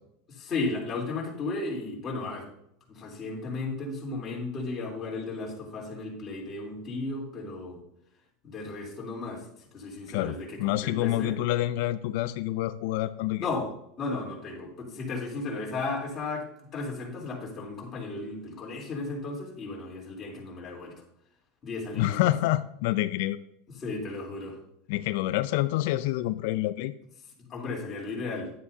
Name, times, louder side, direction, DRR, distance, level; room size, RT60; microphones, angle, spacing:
voice 1, 0.3-2.5 2.9-7.8 8.4-9.4 9.7-11.4 13.4-13.7 14.0-16.5 16.7-20.9 21.6-22.3 23.8-24.6 27.5-28.5, left 3 dB, 25° left, -3 dB, 3.3 m, -34 dB
voice 2, 10.1-13.5 21.9-23.4 24.9-26.9, left 15 dB, 65° left, 13 dB, 0.4 m, -27 dB
11.0 x 9.5 x 2.7 m, 0.76 s
supercardioid pair, 145°, 0 cm